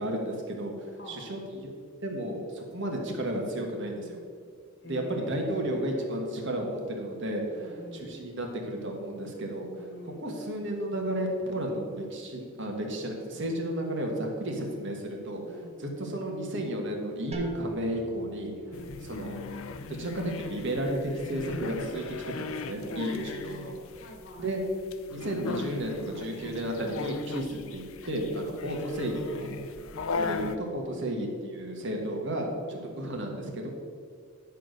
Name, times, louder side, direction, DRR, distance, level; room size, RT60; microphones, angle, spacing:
voice 1, 0.0-1.7 2.0-4.2 4.9-7.7 7.9-9.7 10.0-15.4 15.8-18.5 19.0-19.4 19.9-23.7 24.4-24.6 25.1-29.5 30.1-33.7, right 1 dB, 55° right, 1 dB, 1.6 m, -33 dB
voice 2, 1.0-1.3 4.8-6.3 7.5-8.3 9.8-10.4 15.4-16.0 18.7-19.3 22.8-24.6 28.3-28.8 30.9-31.2 32.7-33.1, equal, 50° left, 1 dB, 1.3 m, -45 dB
sound 1, 17.3-22.8, right 1 dB, 30° right, 1.0 m, -48 dB
sound 2, 18.7-30.6, left 4 dB, 70° left, 0.6 m, -38 dB
10.0 x 4.7 x 6.5 m, 2.2 s
head